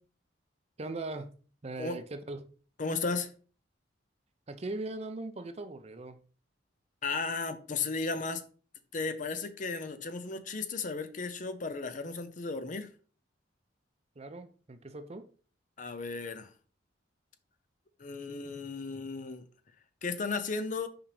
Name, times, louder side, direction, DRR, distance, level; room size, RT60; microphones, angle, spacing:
voice 1, 0.8-1.3 1.6-2.5 4.5-6.2 14.2-15.3, right 2 dB, 35° right, 0.6 m, -39 dB
voice 2, 2.8-3.3 7.0-8.4 8.9-12.9 15.8-16.5 18.0-19.4 20.0-20.9, left 4 dB, 40° left, 0.6 m, -35 dB
5.9 x 5.3 x 3.3 m
head